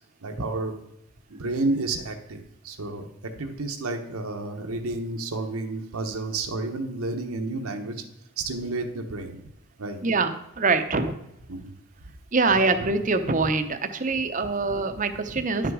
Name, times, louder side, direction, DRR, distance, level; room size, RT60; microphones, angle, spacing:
voice 1, 0.2-0.7 1.3-8.0 8.4-9.4 9.8-10.0 11.5-11.7, right 2 dB, 90° right, 4 dB, 1.1 m, -31 dB
voice 2, 10.6-11.1 12.3-15.7, right 3 dB, 35° right, 9 dB, 0.7 m, -24 dB
10.5 x 6.0 x 4.8 m, 0.81 s
head